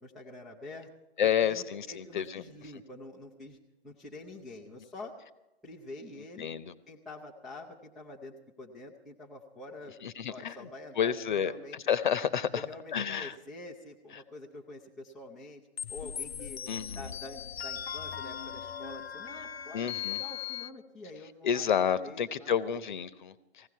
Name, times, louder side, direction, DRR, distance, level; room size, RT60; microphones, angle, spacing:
voice 1, 0.0-0.9 1.4-3.6 3.8-5.1 5.6-6.5 6.9-10.0 10.3-11.8 12.5-15.6 15.9-16.6 16.9-22.8, left 2 dB, ahead, -7 dB, 0.5 m, -47 dB
voice 2, 1.2-2.4 6.4-6.7 10.0-10.7 11.0-12.7 12.9-13.3 16.7-17.1 19.7-20.2 21.4-23.7, left 8 dB, 45° left, 15 dB, 0.9 m, -30 dB
sound 1, 15.8-20.7, left 9 dB, 70° left, 0.6 m, -39 dB
19.0 x 16.0 x 4.6 m, 1.0 s
figure-of-eight pair, 135°, 32 cm